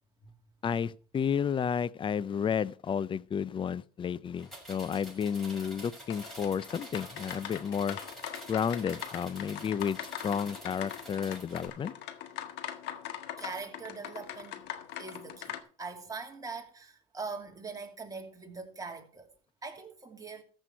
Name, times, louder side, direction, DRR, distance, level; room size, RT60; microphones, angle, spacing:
voice 1, 0.6-8.0 8.5-11.9, left 7 dB, 25° left, 0.5 m, -32 dB
sound 1, 4.4-11.7, right 1 dB, ahead, 6.2 m, -48 dB
sound 2, 6.1-15.6, left 10 dB, 65° left, 1.5 m, -42 dB
voice 2, 13.4-14.6 15.0-19.3 19.6-20.4, right 4 dB, 20° right, 2.7 m, -42 dB
14.0 x 6.4 x 5.5 m
supercardioid pair, 95°, 19 cm